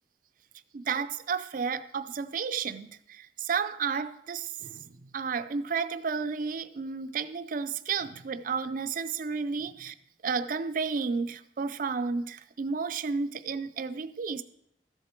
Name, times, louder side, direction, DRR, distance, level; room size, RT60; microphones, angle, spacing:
voice 1, 0.7-9.9 10.2-14.4, right 5 dB, 50° right, 0.4 m, -32 dB
13.0 x 7.5 x 4.4 m
head